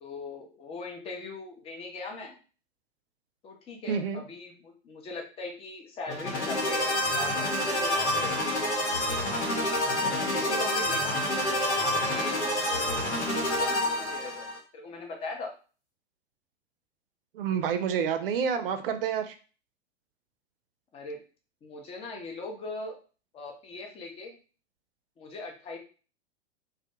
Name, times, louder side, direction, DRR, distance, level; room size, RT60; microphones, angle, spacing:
voice 1, 0.0-2.4 3.4-8.4 9.5-9.9 10.2-11.2 11.6-13.1 13.4-14.5 14.7-15.5 20.9-21.2 21.6-22.9 23.3-24.4 25.2-25.8, left 3 dB, 20° left, 1 dB, 0.6 m, -40 dB
voice 2, 3.9-4.2 17.3-19.4, right 7 dB, 55° right, 8 dB, 0.5 m, -28 dB
sound 1, 6.1-14.6, left 1 dB, 85° left, 1.0 m, -28 dB
2.2 x 2.2 x 2.8 m, 0.36 s
figure-of-eight pair, 100°, 33 cm